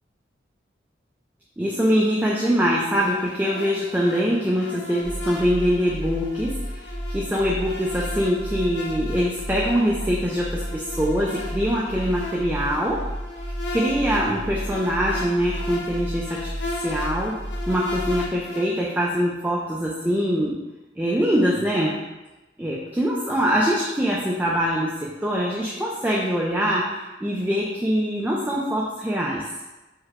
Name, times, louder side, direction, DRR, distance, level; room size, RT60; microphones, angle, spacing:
voice 1, 1.6-13.0 13.7-16.5 16.8-17.4 17.7-20.5 21.0-22.0 22.6-29.4, equal, 10° right, -4 dB, 0.3 m, -23 dB
sound 1, 3.0-19.0, left 2 dB, 85° left, 0.6 m, -37 dB
sound 2, 5.0-18.4, equal, 10° left, 1.0 m, -33 dB
4.6 x 2.1 x 3.5 m, 1.1 s
head